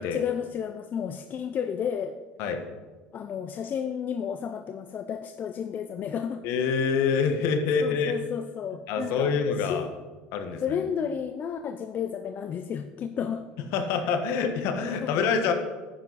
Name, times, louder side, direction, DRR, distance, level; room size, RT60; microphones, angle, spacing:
voice 1, 0.0-2.2 3.1-6.4 7.8-9.3 9.6-9.9 10.6-13.5 15.0-15.2, left 8 dB, 40° left, 8 dB, 0.6 m, -32 dB
voice 2, 6.4-8.1 8.9-9.9 10.3-10.8 13.7-15.5, left 5 dB, 65° left, 6 dB, 1.5 m, -26 dB
10.5 x 9.7 x 4.2 m, 1.3 s
supercardioid pair, 90°, 5 cm